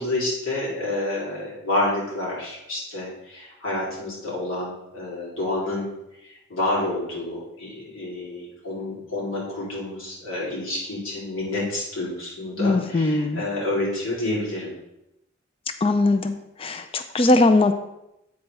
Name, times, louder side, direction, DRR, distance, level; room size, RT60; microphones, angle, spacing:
voice 1, 0.0-5.9 6.2-14.7, left 2 dB, 75° left, -6 dB, 2.8 m, -29 dB
voice 2, 12.6-13.4 15.8-16.3 16.6-17.7, left 2 dB, 25° left, 8 dB, 0.4 m, -20 dB
8.3 x 3.3 x 6.1 m, 0.87 s
head